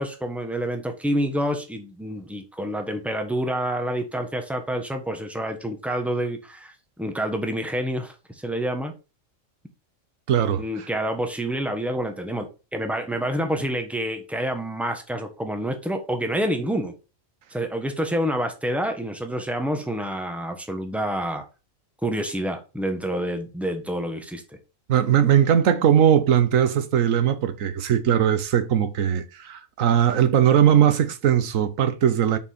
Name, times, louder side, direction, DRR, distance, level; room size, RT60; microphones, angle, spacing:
voice 1, 0.0-8.9 10.6-16.9 17.5-21.4 22.0-24.6, equal, ahead, 1.1 m, -28 dB
voice 2, 10.3-10.6 24.9-32.4, right 9 dB, 85° right, 1.3 m, -19 dB
7.1 x 5.6 x 4.3 m
omnidirectional pair, 1.3 m